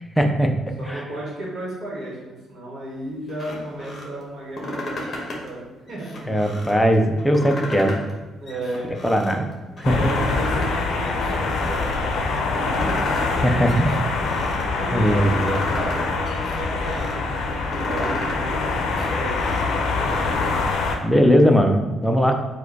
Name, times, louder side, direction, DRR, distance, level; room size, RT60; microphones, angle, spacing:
voice 1, 0.2-0.5 0.9-1.0 6.3-8.0 9.0-9.5 9.8-10.1 13.4-14.0 14.9-15.5 21.0-22.4, equal, 5° left, 3 dB, 0.4 m, -19 dB
voice 2, 0.8-6.1 8.3-8.9 9.6-13.1 14.7-20.2, right 1 dB, 40° right, -4 dB, 1.2 m, -34 dB
sound 1, 3.3-4.1 4.4-5.5 5.9-6.8 7.2-8.1 8.5-9.4 9.8-10.7 11.0-12.0 12.3-13.3 13.7-14.6 15.1-16.0 16.2-17.1 17.5-18.4 18.8-20.5, left 1 dB, 35° left, 1.0 m, -33 dB
sound 2, 9.8-21.0, left 3 dB, 70° left, 0.5 m, -24 dB
4.7 x 2.2 x 4.6 m, 1.2 s
cardioid pair, 140°, 0 cm